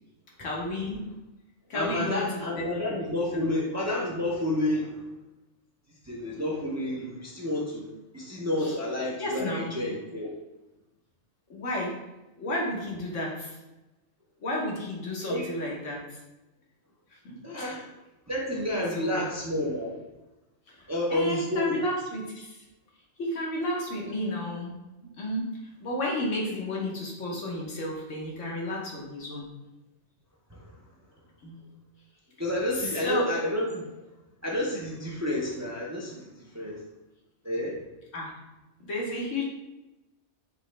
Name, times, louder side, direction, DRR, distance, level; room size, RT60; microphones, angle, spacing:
voice 1, 0.4-1.0 1.7-2.6 3.3-3.5 8.6-8.7 9.2-9.7 11.5-11.9 12.4-13.6 14.4-16.0 17.2-17.7 18.7-19.3 20.7-20.8 21.1-22.6 23.2-24.7 25.2-25.5 25.8-29.5 31.4-31.6 33.0-33.2 38.1-38.3 38.9-39.4, left 1 dB, 90° left, -2 dB, 1.4 m, -32 dB
voice 2, 1.7-5.1 6.0-7.9 8.1-10.3 15.3-15.5 17.4-17.9 18.3-20.0 20.9-21.8 30.5-30.7 32.4-33.8 34.4-36.8 37.4-37.8, left 1 dB, 20° right, -3 dB, 0.5 m, -30 dB
5.3 x 3.1 x 3.2 m, 1.0 s
omnidirectional pair, 1.2 m